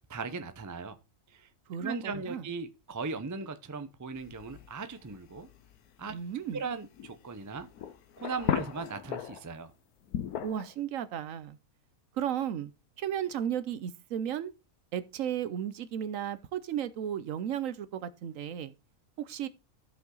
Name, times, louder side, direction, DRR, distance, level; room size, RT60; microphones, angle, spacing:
voice 1, 0.1-1.0 1.3-1.5 1.8-5.5 6.0-6.1 6.5-7.7 8.2-9.7, right 4 dB, 25° right, 0.4 m, -38 dB
voice 2, 1.7-2.4 6.1-6.6 10.4-11.6 12.2-12.7 13.0-14.5 14.9-18.7 19.2-19.5, right 9 dB, 65° right, 1.0 m, -34 dB
sound 1, 4.2-9.6 10.0-10.7, left 9 dB, 90° left, 1.3 m, -37 dB
13.5 x 5.6 x 3.9 m
omnidirectional pair, 1.6 m